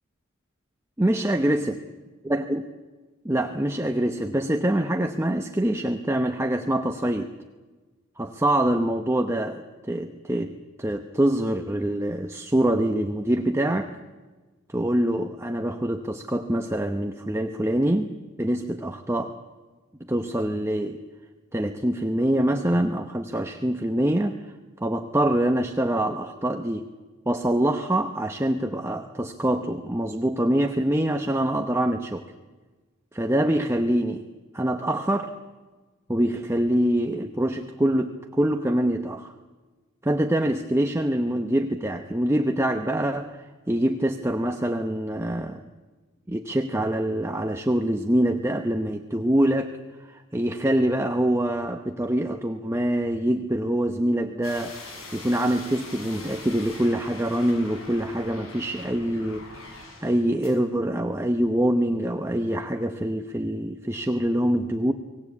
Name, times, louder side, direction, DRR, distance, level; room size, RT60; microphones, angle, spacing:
voice 1, 1.0-1.8 2.3-2.6 3.2-7.3 8.2-13.9 14.7-18.1 18.4-19.3 20.1-21.0 21.5-24.4 24.8-26.9 27.3-32.2 33.1-34.3 34.5-35.3 36.1-39.3 40.0-45.6 46.3-49.7 50.1-59.7 60.0-64.9, right 1 dB, 15° right, 5 dB, 0.9 m, -25 dB
sound 1, 54.4-60.2 60.4-60.5, left 2 dB, 85° left, 7.0 m, -42 dB
24.0 x 18.0 x 8.5 m, 1.3 s
head